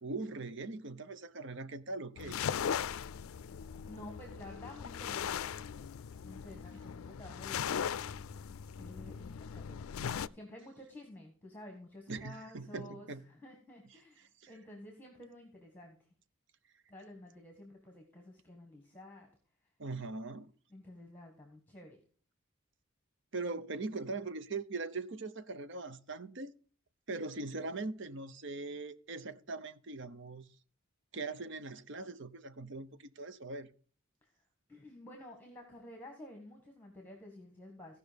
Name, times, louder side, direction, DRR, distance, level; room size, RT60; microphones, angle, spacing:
voice 1, 0.0-2.4 12.1-13.2 14.4-14.5 19.8-20.5 23.3-26.5 27.1-30.5 31.1-33.7, right 3 dB, 60° right, 0.8 m, -41 dB
sound 1, 2.2-10.3, left 8 dB, 85° left, 0.4 m, -39 dB
voice 2, 3.9-5.6 6.2-7.8 8.8-9.9 10.3-16.0 16.9-19.3 20.7-22.0 34.2-34.3 34.7-38.0, left 1 dB, 10° left, 1.7 m, -51 dB
15.5 x 5.4 x 5.2 m
head